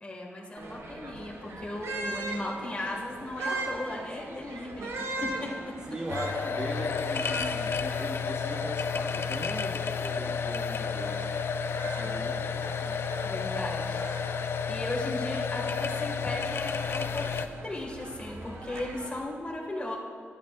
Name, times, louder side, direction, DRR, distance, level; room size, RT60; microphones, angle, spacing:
voice 1, 0.0-6.0 13.2-14.0 14.7-20.0, left 1 dB, 25° left, -2 dB, 2.0 m, -36 dB
sound 1, 0.6-19.2, right 2 dB, 85° right, 1.5 m, -41 dB
voice 2, 5.9-11.3 11.8-13.1, right 1 dB, 20° right, 1 dB, 0.7 m, -40 dB
sound 2, 6.1-17.5, left 6 dB, 60° left, 0.4 m, -31 dB
21.5 x 10.5 x 2.5 m, 2.1 s
wide cardioid pair, 150°, 5 cm